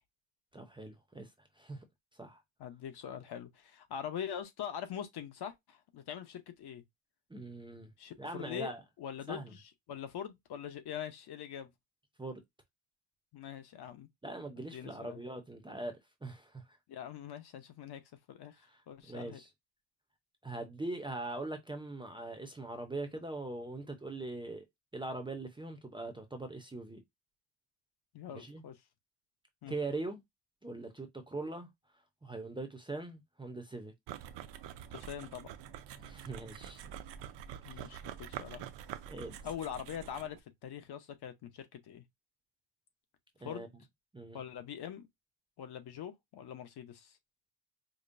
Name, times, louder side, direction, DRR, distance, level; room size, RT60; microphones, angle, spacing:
voice 1, 0.5-1.3 1.6-1.8 2.2-2.4 7.3-7.9 8.2-8.8 9.3-9.4 12.2-12.4 14.2-16.8 19.0-19.5 20.4-24.6 24.9-27.0 28.3-28.7 29.7-30.2 30.6-31.7 32.2-33.9 36.0-36.8 37.8-37.9 39.1-39.4 43.4-43.7 44.1-44.4, right 2 dB, 10° right, 0.5 m, -41 dB
voice 2, 2.6-6.8 8.0-8.7 9.0-9.6 9.9-11.7 13.3-14.1 14.6-15.2 16.9-18.0 18.3-18.6 18.9-19.4 28.1-28.8 29.6-29.7 34.9-35.5 37.6-38.7 39.4-40.4 40.6-42.0 43.4-43.7 44.3-45.1 45.6-47.2, left 9 dB, 55° left, 0.8 m, -43 dB
sound 1, 34.1-40.4, right 10 dB, 60° right, 0.6 m, -46 dB
5.1 x 2.1 x 2.6 m
cardioid pair, 140°, 48 cm